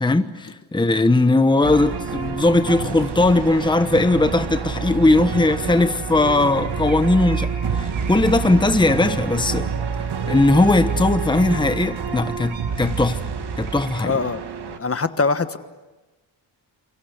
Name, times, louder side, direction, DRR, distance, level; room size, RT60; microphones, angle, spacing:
voice 1, 0.0-7.5 7.8-9.7 10.3-13.2 13.6-14.1, left 2 dB, 10° left, 1.1 m, -18 dB
sound 1, 1.6-14.8, right 6 dB, 60° right, 1.7 m, -27 dB
sound 2, 6.5-8.3 10.9-11.0 11.2-11.9 12.5-13.2 13.6-14.0, right 6 dB, 90° right, 7.4 m, -43 dB
voice 2, 14.0-14.4 14.7-15.6, left 4 dB, 30° left, 1.4 m, -22 dB
28.5 x 23.5 x 8.1 m
wide cardioid pair, 120°, 45 cm